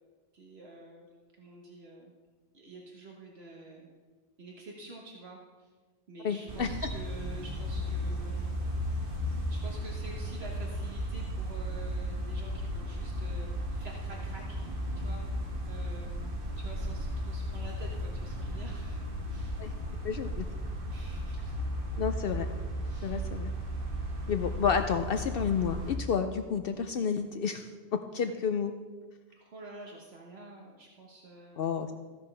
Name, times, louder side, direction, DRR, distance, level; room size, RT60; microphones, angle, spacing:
voice 1, 0.3-1.1 1.4-2.1 2.5-3.9 4.4-5.7 6.1-8.5 9.5-15.2 15.7-16.1 16.6-19.0 19.3-19.6 20.9-21.5 22.8-23.2 29.4-31.7, right 2 dB, 70° right, -1 dB, 1.5 m, -48 dB
voice 2, 6.2-6.7 19.6-19.7 20.0-20.5 22.0-22.5 23.0-23.5 24.3-28.7 31.6-31.9, left 6 dB, 65° left, 7 dB, 0.7 m, -30 dB
sound 1, 6.5-26.0, equal, 55° right, 1.6 m, -35 dB
15.0 x 10.5 x 3.3 m, 1.4 s
omnidirectional pair, 1.1 m